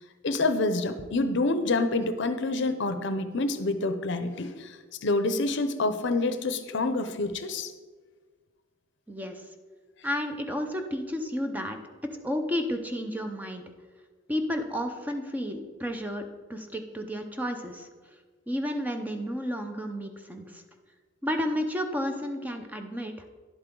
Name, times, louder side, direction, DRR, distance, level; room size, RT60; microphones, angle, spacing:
voice 1, 0.2-7.7, left 2 dB, 60° left, 10 dB, 0.7 m, -27 dB
voice 2, 9.1-9.5 10.0-11.8 12.2-13.6 14.3-16.2 16.5-17.9 18.5-20.6 21.2-23.1, equal, 10° right, 5 dB, 0.6 m, -31 dB
10.5 x 8.0 x 3.8 m, 1.4 s
head